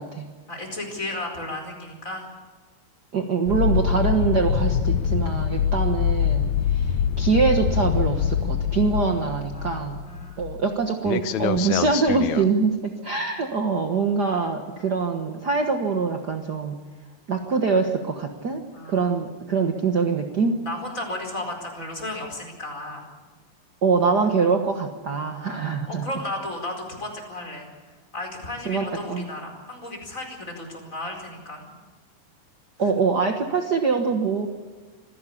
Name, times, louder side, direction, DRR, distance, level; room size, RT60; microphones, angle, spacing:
voice 1, 0.5-2.3 6.5-6.7 8.9-9.2 9.5-10.4 13.1-13.2 18.7-19.1 20.6-23.1 25.3-27.7 28.1-31.7, left 1 dB, 20° left, 2 dB, 4.8 m, -34 dB
voice 2, 3.1-10.0 10.4-16.8 17.3-18.6 18.9-20.6 23.8-26.1 28.6-29.2 32.8-34.5, right 5 dB, 60° right, 4 dB, 1.0 m, -24 dB
sound 1, 3.5-10.7 11.1-12.5, left 8 dB, 70° left, 1.9 m, -24 dB
25.5 x 16.5 x 8.6 m, 1.4 s
omnidirectional pair, 4.0 m